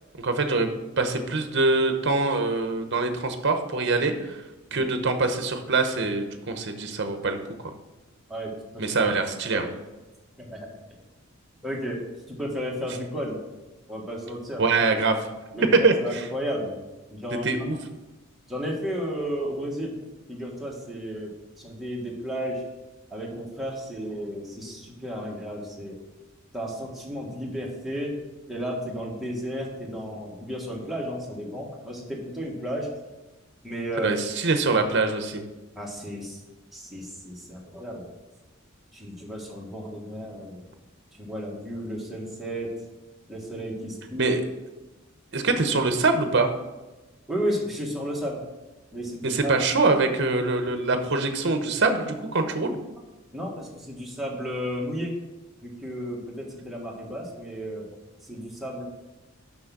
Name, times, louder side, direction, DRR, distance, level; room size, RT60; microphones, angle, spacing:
voice 1, 0.2-4.4 4.7-7.4 8.8-9.6 14.6-15.3 15.8-16.3 17.4-17.8 34.0-35.4 44.2-44.4 45.3-46.5 49.2-52.8, right 3 dB, 55° right, 7 dB, 0.9 m, -24 dB
voice 2, 11.6-12.0 12.3-13.4 13.9-14.6 15.5-15.7 16.0-16.7 17.1-17.5 18.5-19.9 20.3-22.6 23.1-26.0 26.5-28.2 28.5-32.9 33.6-34.1 35.7-36.4 36.7-38.1 38.9-40.6 41.2-42.7 43.3-44.3 47.3-48.4 48.9-49.5 53.3-55.1 55.6-57.9 58.2-58.8, equal, ahead, -4 dB, 1.5 m, -33 dB
6.2 x 6.0 x 6.0 m, 1.1 s
head